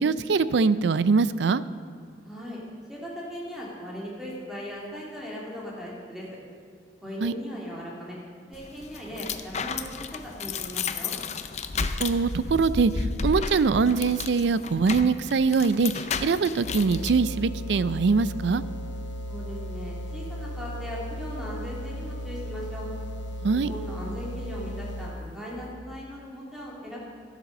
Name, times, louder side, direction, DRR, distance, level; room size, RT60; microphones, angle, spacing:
voice 1, 0.0-1.6 7.2-7.3 12.0-12.9 13.2-15.9 16.2-18.6 23.4-23.7, right 4 dB, 70° right, 16 dB, 0.4 m, -23 dB
voice 2, 2.2-2.6 2.9-6.2 7.0-8.2 8.5-11.2 19.3-22.9 23.5-27.0, equal, ahead, -5 dB, 2.7 m, -38 dB
sound 1, 8.5-17.1, left 4 dB, 40° left, 0.5 m, -33 dB
sound 2, 16.6-25.3, equal, 80° left, 0.9 m, -36 dB
12.5 x 8.2 x 6.5 m, 2.1 s
head